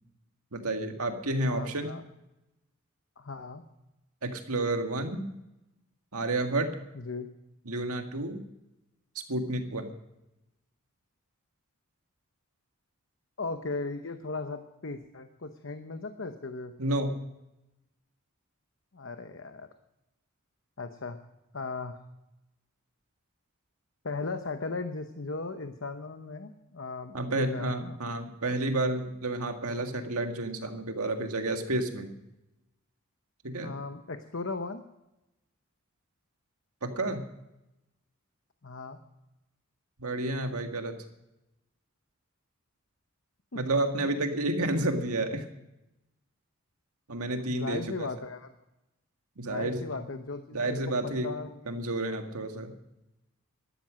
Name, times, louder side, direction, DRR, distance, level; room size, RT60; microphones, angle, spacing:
voice 1, 0.5-1.9 4.2-5.2 6.1-6.7 7.7-8.4 9.3-9.9 16.8-17.1 27.1-32.1 33.4-33.7 36.8-37.3 40.0-41.0 43.6-45.4 47.1-48.1 49.4-49.8 50.5-51.3 51.7-52.7, right 2 dB, 90° right, 5 dB, 1.9 m, -30 dB
voice 2, 1.5-2.0 3.2-3.6 6.9-7.3 13.4-16.7 18.9-19.7 20.8-21.2 21.5-22.0 24.0-28.0 33.6-34.8 38.6-39.0 43.5-43.6 47.4-48.5 49.4-51.8, left 3 dB, 60° left, 8 dB, 0.9 m, -37 dB
13.5 x 12.5 x 6.4 m, 0.91 s
head